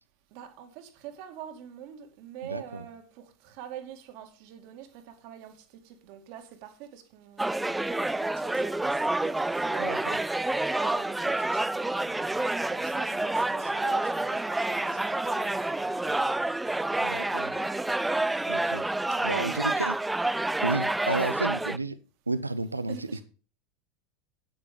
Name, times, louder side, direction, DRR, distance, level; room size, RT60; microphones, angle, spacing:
voice 1, 0.3-16.3 17.0-17.9 19.1-19.7 22.9-23.2, right 11 dB, 55° right, 2.1 m, -45 dB
voice 2, 2.4-2.9 9.8-10.2 17.0-17.5 18.5-18.9 19.2-20.0 20.6-22.0 22.3-23.2, right 3 dB, 90° right, 0.6 m, -32 dB
sound 1, 7.4-21.8, right 2 dB, 5° right, 0.4 m, -28 dB
8.9 x 8.9 x 5.2 m
figure-of-eight pair, 80°, 0 cm